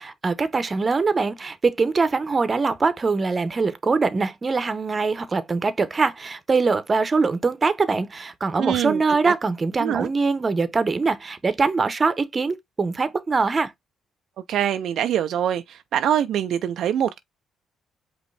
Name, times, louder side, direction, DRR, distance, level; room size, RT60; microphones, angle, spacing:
voice 1, 0.0-13.7, right 4 dB, 30° right, 0.8 m, -23 dB
voice 2, 8.6-9.3 9.8-10.1 14.5-17.2, right 10 dB, 75° right, 0.4 m, -24 dB
5.2 x 3.0 x 3.2 m
cardioid pair, 90°, 0 cm